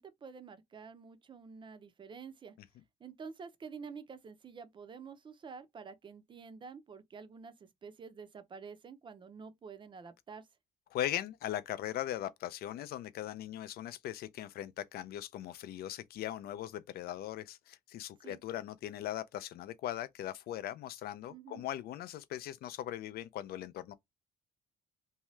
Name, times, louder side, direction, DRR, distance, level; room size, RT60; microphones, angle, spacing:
voice 1, 0.0-2.6 3.0-10.5 18.2-18.4 21.3-21.6, right 5 dB, 30° right, 0.5 m, -49 dB
voice 2, 10.9-23.9, left 12 dB, 65° left, 0.4 m, -39 dB
2.7 x 2.3 x 3.0 m
cardioid pair, 110°, 17 cm